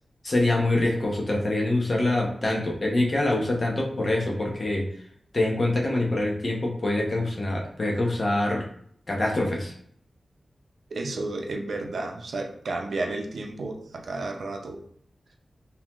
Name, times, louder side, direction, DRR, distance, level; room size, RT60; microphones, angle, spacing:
voice 1, 0.2-4.9 5.3-8.6 9.1-9.7, left 2 dB, 40° left, -1 dB, 0.9 m, -25 dB
voice 2, 10.9-14.8, right 2 dB, 70° right, 2 dB, 0.6 m, -32 dB
3.8 x 2.8 x 3.0 m, 0.64 s
wide cardioid pair, 120°, 0 cm